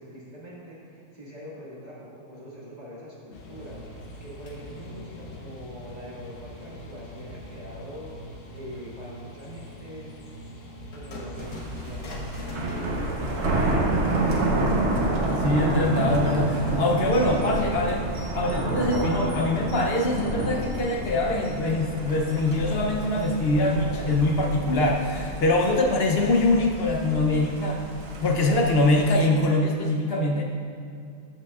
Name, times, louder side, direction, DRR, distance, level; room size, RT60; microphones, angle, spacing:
voice 1, 0.0-10.2 10.9-14.3 14.8-16.8 17.2-18.0, equal, 30° right, -7 dB, 1.8 m, -43 dB
sound 1, 3.3-18.7, left 1 dB, 85° left, 1.5 m, -42 dB
Thunder, 11.4-29.1, right 2 dB, 55° right, 1.2 m, -29 dB
voice 2, 15.3-18.0 18.3-27.8 28.1-30.4, left 2 dB, 55° left, 1 dB, 0.8 m, -23 dB
13.0 x 6.0 x 2.3 m, 2.4 s
omnidirectional pair, 1.5 m